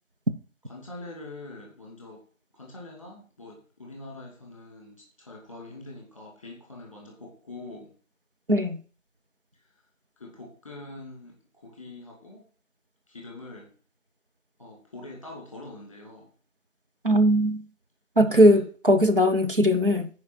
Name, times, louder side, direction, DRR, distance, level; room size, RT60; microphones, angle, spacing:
voice 1, 0.7-2.2 2.5-7.9 10.2-12.4 13.1-13.7 14.6-16.3 18.3-18.6, left 2 dB, 10° left, 2.1 m, -44 dB
voice 2, 17.0-17.6 18.2-20.1, equal, 40° right, 1.0 m, -19 dB
13.5 x 4.9 x 4.5 m
figure-of-eight pair, 170°, 40 cm